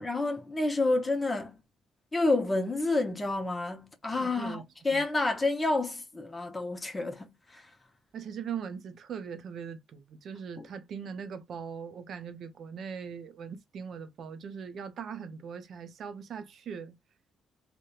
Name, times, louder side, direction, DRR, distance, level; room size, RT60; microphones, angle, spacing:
voice 1, 0.0-1.6 2.1-7.7 10.6-10.7, left 2 dB, 20° left, 0.6 m, -29 dB
voice 2, 4.2-4.6 4.9-5.0 8.1-17.0, right 7 dB, 65° right, 0.5 m, -40 dB
2.8 x 2.1 x 2.2 m
cardioid pair, 90°, 0 cm